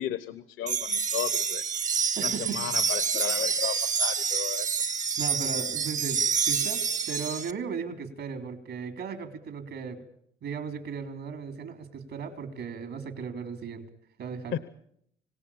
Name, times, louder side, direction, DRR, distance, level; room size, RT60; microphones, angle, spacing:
voice 1, 0.0-1.6 2.2-4.8 14.5-14.6, left 10 dB, 80° left, 14 dB, 1.0 m, -34 dB
sound 1, 0.7-7.5, right 6 dB, 40° right, 0.9 m, -28 dB
voice 2, 2.2-2.6 5.2-10.0 10.4-13.9 14.2-14.6, right 6 dB, 75° right, 8 dB, 3.5 m, -36 dB
26.5 x 17.5 x 8.7 m, 0.71 s
cardioid pair, 90°, 20 cm